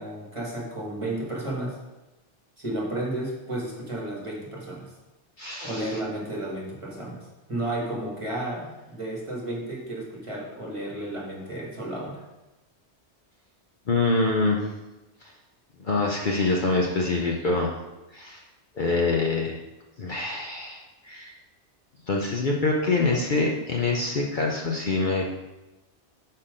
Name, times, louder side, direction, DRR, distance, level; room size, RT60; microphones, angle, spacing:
voice 1, 0.0-1.8 2.6-4.9 5.6-12.2, right 1 dB, 25° right, -4 dB, 1.5 m, -32 dB
voice 2, 5.4-6.0 13.9-14.7 15.2-15.3 15.8-17.7 18.1-18.4 18.8-19.5 20.0-21.3 22.1-25.3, left 3 dB, 50° left, -1 dB, 0.8 m, -25 dB
5.7 x 4.3 x 5.1 m, 1.0 s
omnidirectional pair, 1.2 m